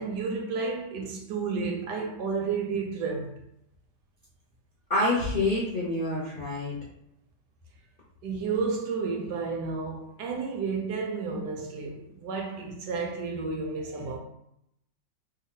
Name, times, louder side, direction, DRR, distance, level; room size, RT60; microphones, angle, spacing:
voice 1, 0.0-3.4 8.2-14.2, right 4 dB, 75° right, 1.1 m, -31 dB
voice 2, 4.9-6.7, left 2 dB, 45° left, 0.7 m, -27 dB
3.2 x 2.2 x 3.7 m
omnidirectional pair, 1.9 m